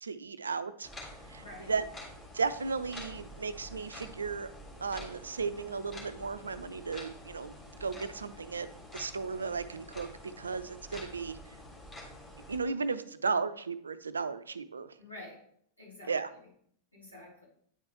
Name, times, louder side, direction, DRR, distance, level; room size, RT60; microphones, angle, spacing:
voice 1, 0.0-0.9 1.3-1.8 2.3-4.5 4.8-7.5 7.8-8.7 8.9-10.1 10.4-11.4 12.5-14.9 16.1-16.3, right 4 dB, 75° right, 13 dB, 0.4 m, -35 dB
sound 1, 0.8-12.6, left 1 dB, 20° left, 1.9 m, -48 dB
voice 2, 1.4-1.7 15.0-15.5 15.8-16.5 16.9-17.5, left 1 dB, 80° left, -6 dB, 2.6 m, -49 dB
9.1 x 4.5 x 3.0 m, 0.65 s
figure-of-eight pair, 90°, 0 cm